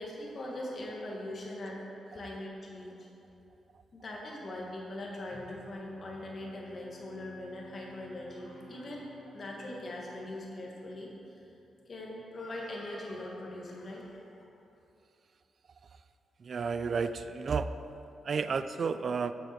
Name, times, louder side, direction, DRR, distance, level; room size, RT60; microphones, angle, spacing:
voice 1, 0.0-3.1 3.9-9.1 9.3-11.6 11.9-14.4, left 1 dB, 40° left, -2 dB, 1.5 m, -41 dB
Bowed string instrument, 6.2-11.8, equal, 80° right, 1.5 m, -55 dB
voice 2, 16.4-17.7 18.2-19.3, right 5 dB, 50° right, 11 dB, 0.3 m, -31 dB
8.5 x 7.1 x 4.3 m, 2.8 s
cardioid pair, 115°, 0 cm